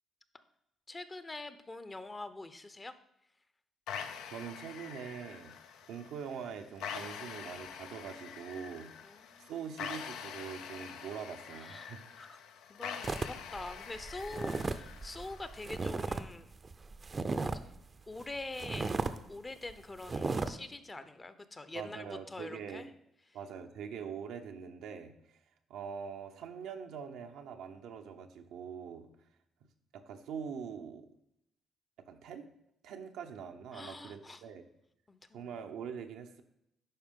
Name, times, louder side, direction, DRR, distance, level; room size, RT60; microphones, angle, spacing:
voice 1, 0.9-2.9 9.0-9.5 11.5-12.4 12.7-16.5 17.3-17.7 18.1-18.9 19.3-22.9 33.7-34.4 35.1-35.5, left 2 dB, 25° left, 11 dB, 0.6 m, -45 dB
sound 1, 3.9-15.9, left 7 dB, 90° left, 0.5 m, -45 dB
voice 2, 4.3-5.5 5.9-8.9 9.4-12.0 21.7-22.9 23.3-25.1 25.7-29.1 29.9-31.1 32.1-32.5 32.8-34.6 35.3-36.4, right 7 dB, 85° right, 4 dB, 0.7 m, -43 dB
sound 2, 13.0-16.3 16.5-17.7 18.2-18.3 18.6-19.2 19.6-19.7 20.0-20.5, right 3 dB, 30° right, 0.5 m, -35 dB
11.0 x 4.3 x 3.7 m, 0.80 s
cardioid pair, 90°, 0 cm